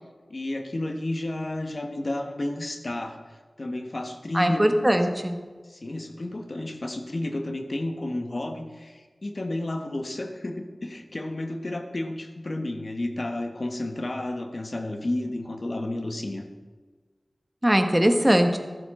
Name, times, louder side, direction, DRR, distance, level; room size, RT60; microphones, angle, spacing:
voice 1, 0.3-4.6 5.7-16.4, left 1 dB, 55° left, 5 dB, 1.4 m, -32 dB
voice 2, 4.3-5.4 17.6-18.6, equal, 15° right, 5 dB, 1.3 m, -20 dB
13.5 x 12.0 x 3.8 m, 1.4 s
wide cardioid pair, 50°, 0 cm